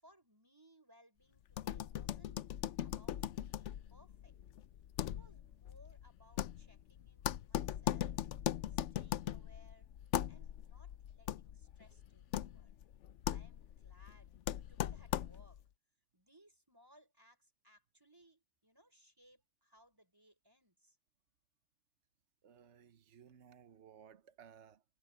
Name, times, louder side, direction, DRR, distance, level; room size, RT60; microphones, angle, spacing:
voice 1, 0.0-2.4 2.8-4.3 5.0-8.2 8.7-9.9 10.3-12.7 13.2-15.6 16.1-21.0, equal, 20° right, 6.3 m, -66 dB
sound 1, 1.5-15.6, left 11 dB, 80° left, 1.0 m, -40 dB
voice 2, 22.4-24.8, right 8 dB, 70° right, 1.3 m, -59 dB
omnidirectional pair, 1.2 m